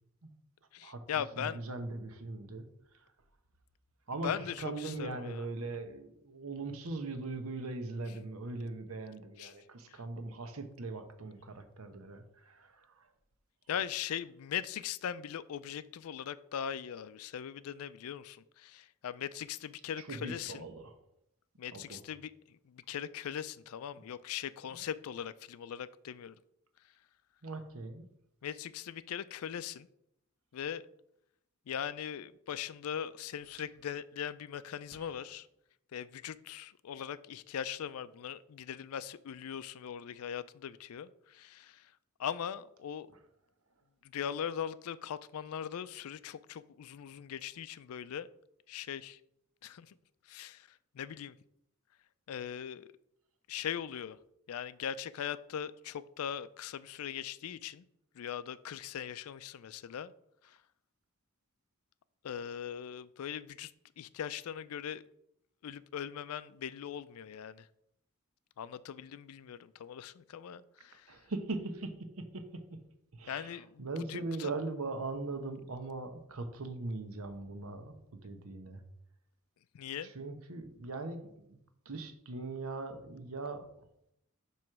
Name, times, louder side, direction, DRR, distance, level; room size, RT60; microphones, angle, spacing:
voice 1, 0.7-1.6 4.2-5.5 9.4-9.6 9.9-10.0 13.7-20.7 21.6-26.4 28.4-29.9 30.5-30.8 31.7-35.5 35.9-41.9 42.2-43.1 44.0-48.3 48.7-49.2 49.6-49.9 50.3-51.3 52.3-52.9 53.5-54.2 54.5-57.9 58.1-60.1 60.4-60.6 62.2-65.0 65.6-67.7 68.6-71.1 73.3-74.5 79.7-80.1, left 9 dB, 75° left, 0.4 m, -40 dB
voice 2, 1.4-2.7 4.1-13.1 20.0-20.9 21.7-22.0 24.7-24.9 27.4-28.1 34.9-35.1 71.1-72.8 73.1-78.8 80.0-81.6 81.9-83.7, right 3 dB, 75° right, 0.9 m, -40 dB
7.6 x 3.1 x 6.0 m
head